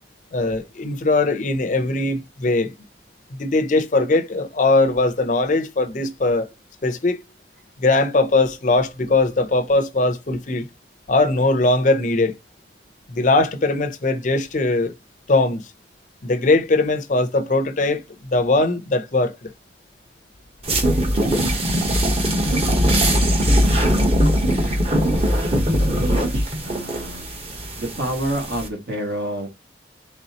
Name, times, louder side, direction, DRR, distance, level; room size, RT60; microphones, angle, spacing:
voice 1, 0.3-2.7 3.4-6.5 6.8-7.2 7.8-10.7 11.1-12.3 13.1-14.9 15.3-15.7 16.2-18.0 18.3-19.5, left 2 dB, 45° left, 0.6 m, -20 dB
sound 1, 20.6-28.7, equal, 30° right, 0.9 m, -20 dB
voice 2, 25.0-27.3 27.8-29.5, right 1 dB, 60° right, 1.5 m, -29 dB
4.1 x 3.5 x 2.8 m
head